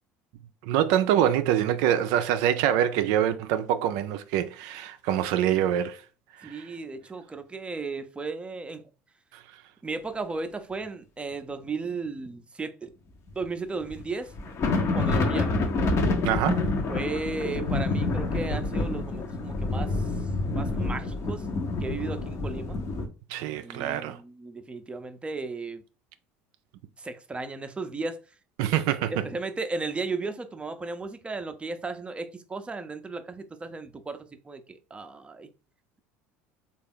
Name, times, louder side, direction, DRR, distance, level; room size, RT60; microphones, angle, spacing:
voice 1, 0.6-6.0 6.4-6.7 16.2-16.7 23.3-24.2 28.6-29.1, right 11 dB, 70° right, 0.4 m, -25 dB
voice 2, 6.4-8.8 9.8-12.9 13.4-14.3 14.9-15.5 16.9-20.0 20.5-21.5 21.8-22.8 23.6-25.8 27.0-28.2 29.1-35.5, right 3 dB, 15° right, 0.5 m, -35 dB
sound 1, 13.3-13.4 13.8-14.0 14.3-23.1, left 3 dB, 45° left, 0.7 m, -27 dB
3.3 x 2.4 x 3.6 m
hypercardioid pair, 80°, 7 cm